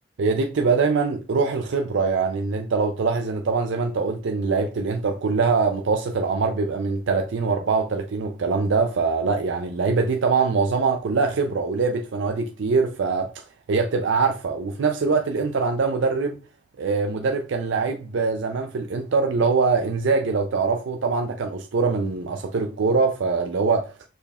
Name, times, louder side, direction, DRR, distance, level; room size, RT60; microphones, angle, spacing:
voice 1, 0.2-13.4 13.7-16.4 16.8-23.9, right 4 dB, 75° right, 0.5 m, -23 dB
5.1 x 4.4 x 2.3 m
head